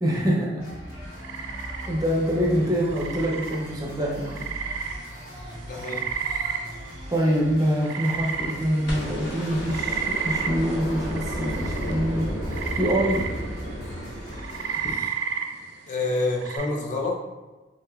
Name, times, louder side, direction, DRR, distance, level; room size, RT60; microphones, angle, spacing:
voice 1, 0.0-0.7 1.9-4.6 7.1-12.3 12.7-13.2, equal, 20° right, -3 dB, 0.5 m, -25 dB
sound 1, 0.6-14.9, equal, 55° left, 1.3 m, -40 dB
sound 2, 1.0-16.7, right 6 dB, 70° right, 0.3 m, -33 dB
voice 2, 5.7-6.5 14.8-15.1 15.9-17.2, left 2 dB, 40° left, -1 dB, 0.5 m, -28 dB
sound 3, 8.9-15.0 16.6-16.7, equal, 80° left, 0.9 m, -32 dB
3.5 x 2.8 x 2.3 m, 1.1 s
head